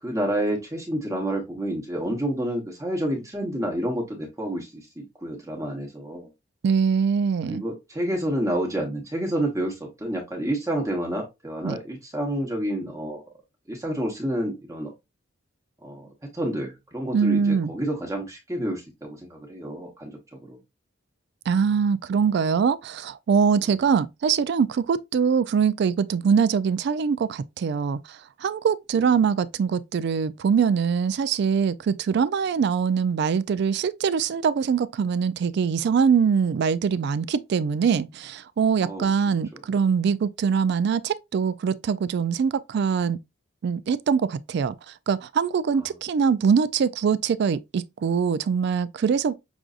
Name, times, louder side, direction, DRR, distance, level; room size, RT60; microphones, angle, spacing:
voice 1, 0.0-6.3 7.5-13.2 13.7-14.9 15.8-20.6 28.9-29.1 38.8-39.0 39.5-39.6 45.8-45.9, right 1 dB, 15° right, 0.9 m, -29 dB
voice 2, 6.6-7.6 11.6-11.8 17.1-17.7 21.5-43.2 43.6-44.8 45.1-49.3, right 6 dB, 60° right, 0.3 m, -23 dB
6.0 x 2.6 x 2.4 m
head